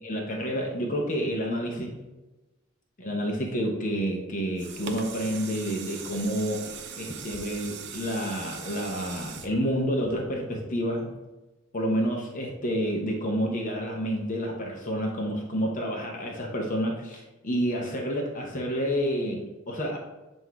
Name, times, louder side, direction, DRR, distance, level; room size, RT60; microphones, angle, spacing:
voice 1, 0.0-2.0 3.0-6.7 7.0-11.1 11.7-20.0, equal, 40° left, 0 dB, 0.8 m, -29 dB
sound 1, 4.3-10.6 11.1-11.2, right 6 dB, 55° right, 0.6 m, -40 dB
7.8 x 2.6 x 4.6 m, 1.1 s
head